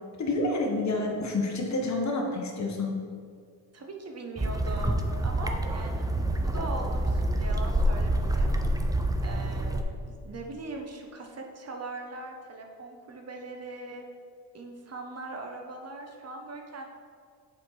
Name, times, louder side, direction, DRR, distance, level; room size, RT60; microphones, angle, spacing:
voice 1, 0.2-3.0, left 2 dB, 40° left, 0 dB, 1.2 m, -28 dB
voice 2, 3.7-8.5 9.2-14.1 14.5-16.9, right 2 dB, 35° right, 2 dB, 1.0 m, -40 dB
sound 1, 4.4-9.8, right 1 dB, 10° right, 0.4 m, -27 dB
7.4 x 4.3 x 4.1 m, 2.1 s
cardioid pair, 90°, 44 cm